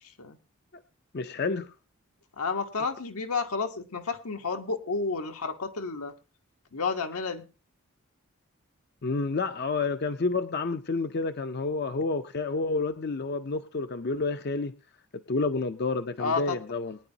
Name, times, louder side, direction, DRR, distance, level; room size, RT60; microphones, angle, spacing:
voice 1, 0.0-0.4 2.4-6.1 6.7-7.4 16.2-16.6, left 4 dB, 80° left, 5 dB, 1.2 m, -31 dB
voice 2, 1.1-1.7 9.0-14.7 15.1-17.0, left 3 dB, 45° left, 9 dB, 0.5 m, -29 dB
21.5 x 9.8 x 2.8 m, 0.31 s
head